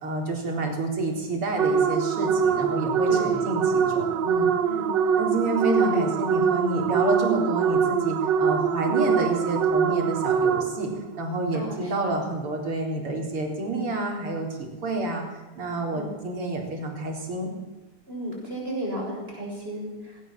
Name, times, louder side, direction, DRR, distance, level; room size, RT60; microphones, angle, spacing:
voice 1, 0.0-4.5 5.2-10.9 11.2-17.5, right 2 dB, 80° right, 1 dB, 4.8 m, -29 dB
sound 1, 1.6-11.0, right 7 dB, 60° right, 1.6 m, -23 dB
voice 2, 3.1-3.5 4.6-5.1 5.9-6.1 8.9-9.2 11.5-12.1 15.9-16.1 18.1-20.2, equal, 25° right, -2 dB, 7.9 m, -34 dB
19.0 x 18.5 x 7.5 m, 1.2 s
omnidirectional pair, 2.4 m